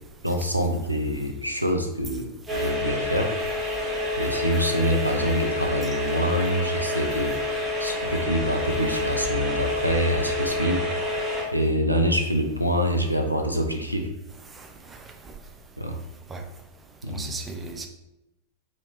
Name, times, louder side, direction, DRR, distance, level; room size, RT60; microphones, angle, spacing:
voice 1, 0.2-3.3 4.2-7.4 7.8-10.8 11.5-14.1 15.8-16.0 17.0-17.4, equal, 90° right, 4 dB, 0.4 m, -25 dB
sound 1, 2.5-11.4, left 2 dB, ahead, 1.3 m, -28 dB
voice 2, 14.6-15.0 16.3-16.4 17.1-17.9, right 4 dB, 15° right, 4 dB, 0.4 m, -36 dB
3.0 x 2.8 x 3.0 m, 0.91 s
figure-of-eight pair, 90°, 0 cm